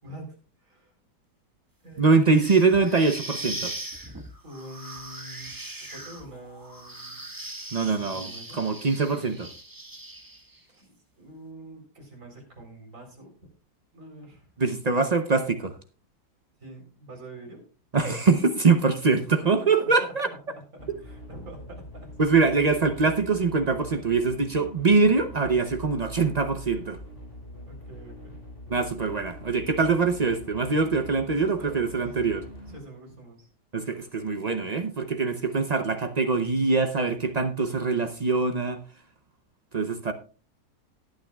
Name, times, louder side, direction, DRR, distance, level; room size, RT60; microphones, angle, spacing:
voice 1, 0.0-0.9 1.8-2.6 4.4-5.5 5.9-7.3 7.9-8.6 10.7-13.3 13.9-14.5 16.6-17.6 19.2-20.1 20.6-22.1 27.7-28.4 31.3-32.3 32.6-33.5, right 1 dB, 45° right, 2 dB, 4.2 m, -45 dB
voice 2, 2.0-3.7 7.7-9.5 14.6-15.7 17.9-20.3 22.2-27.0 28.7-32.4 33.7-38.8 39.7-40.1, right 4 dB, 75° right, 8 dB, 0.3 m, -23 dB
sound 1, 2.3-10.6, right 2 dB, 10° right, 1.3 m, -39 dB
sound 2, 20.8-32.8, equal, 40° left, 4.6 m, -43 dB
18.5 x 9.2 x 2.3 m, 0.36 s
omnidirectional pair, 2.0 m